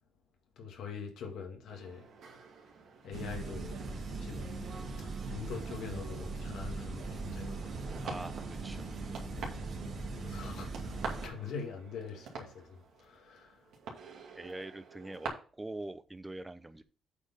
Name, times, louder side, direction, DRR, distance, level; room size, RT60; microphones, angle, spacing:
voice 1, 0.6-2.1 3.0-4.5 5.0-7.9 9.4-9.7 10.2-10.7 11.0-13.6, left 6 dB, 80° left, 2.2 m, -44 dB
sound 1, 1.7-15.3, right 5 dB, 80° right, 2.3 m, -48 dB
sound 2, 3.1-11.3, right 3 dB, 60° right, 2.3 m, -40 dB
voice 2, 8.0-9.4 11.4-11.5 14.3-16.8, right 2 dB, 15° right, 0.8 m, -44 dB
8.3 x 4.5 x 5.6 m
cardioid pair, 90°, 0 cm